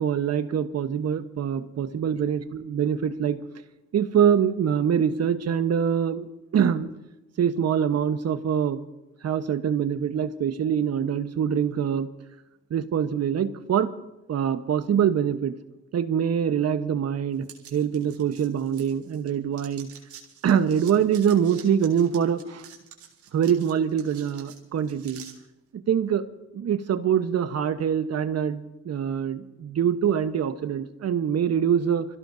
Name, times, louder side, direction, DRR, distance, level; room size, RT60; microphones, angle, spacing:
voice 1, 0.0-3.4 3.9-6.3 6.5-6.9 7.4-8.8 9.2-12.1 12.7-13.9 14.3-15.5 15.9-19.9 20.4-22.6 23.3-25.2 25.7-26.3 26.5-32.0, right 8 dB, 55° right, 9 dB, 1.2 m, -24 dB
sound 1, 17.4-19.3 19.5-25.3, right 8 dB, 75° right, 3.7 m, -47 dB
26.5 x 16.0 x 2.8 m, 0.96 s
cardioid pair, 90°, 30 cm